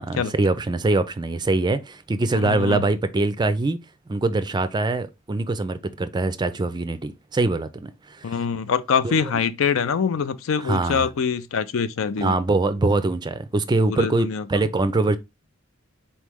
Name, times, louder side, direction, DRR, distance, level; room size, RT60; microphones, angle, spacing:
voice 1, 0.0-3.8 4.1-8.4 9.0-9.3 10.6-11.1 12.2-15.2, right 2 dB, 20° right, 0.4 m, -23 dB
voice 2, 2.3-2.8 8.2-12.4 13.8-14.6, left 6 dB, 70° left, 0.4 m, -24 dB
4.1 x 3.1 x 3.5 m
head